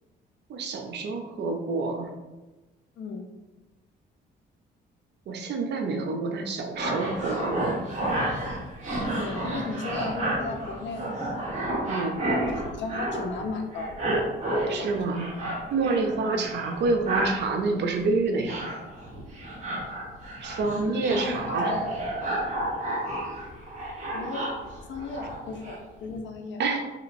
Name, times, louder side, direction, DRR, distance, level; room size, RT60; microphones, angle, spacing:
voice 1, 0.5-2.1 5.3-7.8 11.9-12.2 14.7-15.4 15.7-18.7 20.4-21.7 26.6-26.9, right 3 dB, 60° right, 4 dB, 0.5 m, -28 dB
sound 1, 6.7-13.5 13.7-16.1 16.4-17.4 17.9-18.1 18.4-25.8 26.0-26.2, right 1 dB, 35° right, 1.3 m, -31 dB
voice 2, 9.1-11.5 12.4-14.1 14.6-15.2 16.2-16.4 20.7-21.8 24.1-24.5 24.9-26.6, left 4 dB, 65° left, 4 dB, 0.6 m, -35 dB
3.1 x 2.9 x 2.5 m, 1.1 s
cardioid pair, 90°, 20 cm